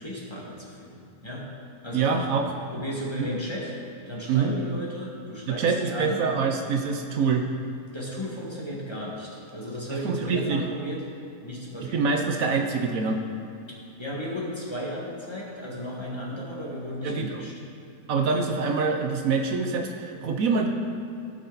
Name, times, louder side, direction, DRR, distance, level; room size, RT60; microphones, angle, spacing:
voice 1, 0.0-1.4 1.8-2.3 2.7-3.7 4.1-6.2 7.9-11.0 11.4-12.0 14.0-17.5, equal, 20° left, -5 dB, 1.8 m, -34 dB
voice 2, 1.9-2.5 3.2-3.3 4.3-4.5 5.5-7.5 9.9-10.6 11.9-13.2 17.0-17.4 18.1-20.7, right 5 dB, 70° right, 3 dB, 1.2 m, -25 dB
15.5 x 6.7 x 4.0 m, 2.6 s
omnidirectional pair, 1.5 m